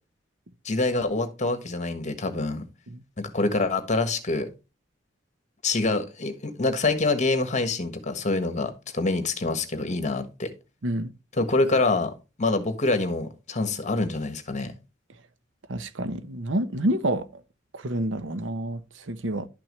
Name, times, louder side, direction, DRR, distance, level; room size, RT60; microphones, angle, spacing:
voice 1, 0.6-2.7 3.2-4.5 5.6-10.5 11.4-12.1 12.4-14.7, left 3 dB, 40° left, 1.4 m, -26 dB
voice 2, 15.7-17.4 17.7-19.5, right 1 dB, 90° right, 0.9 m, -28 dB
11.5 x 6.0 x 3.1 m
head